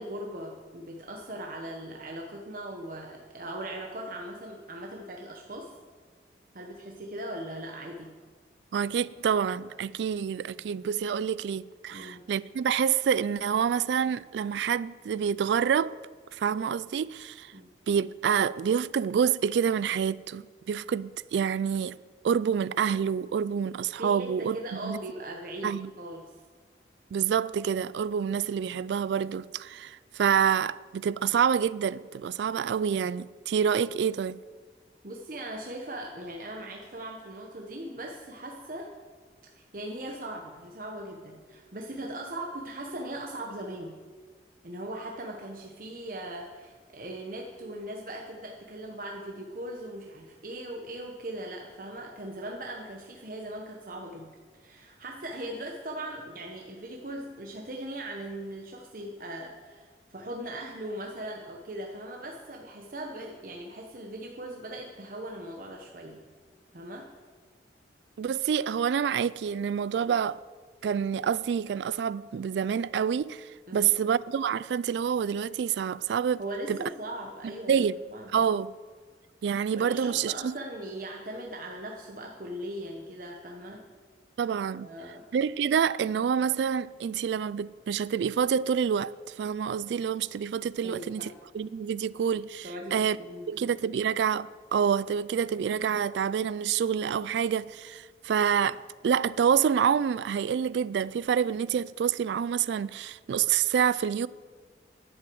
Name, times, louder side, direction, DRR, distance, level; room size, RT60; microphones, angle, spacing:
voice 1, 0.0-5.7 6.5-8.1 11.9-12.2 17.5-17.7 24.0-26.3 35.0-38.9 39.6-44.0 44.6-54.3 54.6-66.2 66.7-67.1 73.7-73.9 76.4-78.6 79.8-83.8 84.8-85.2 90.8-91.3 92.6-93.7, right 1 dB, 50° right, 1.0 m, -39 dB
voice 2, 8.7-15.9 16.3-17.5 17.9-22.0 22.2-24.6 24.8-25.0 25.6-25.9 27.1-34.4 68.2-70.4 70.8-76.4 76.7-76.9 77.7-77.9 78.3-78.7 79.4-80.6 84.4-84.9 85.3-93.2 93.5-104.3, right 7 dB, 75° right, 0.3 m, -27 dB
11.0 x 7.6 x 7.8 m
head